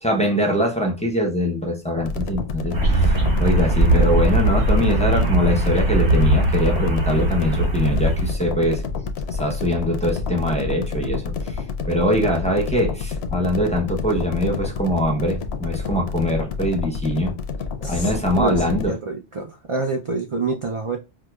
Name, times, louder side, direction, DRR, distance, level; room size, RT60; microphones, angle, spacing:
voice 1, 0.0-8.8 9.4-11.3 11.9-17.3 17.9-18.9, equal, 5° left, 0.7 m, -22 dB
sound 1, 2.0-18.9, left 5 dB, 70° left, 0.8 m, -29 dB
sound 2, 2.7-8.3, right 1 dB, 85° right, 1.5 m, -20 dB
voice 2, 17.8-21.0, right 3 dB, 45° right, 0.4 m, -27 dB
4.7 x 2.2 x 2.2 m
omnidirectional pair, 1.2 m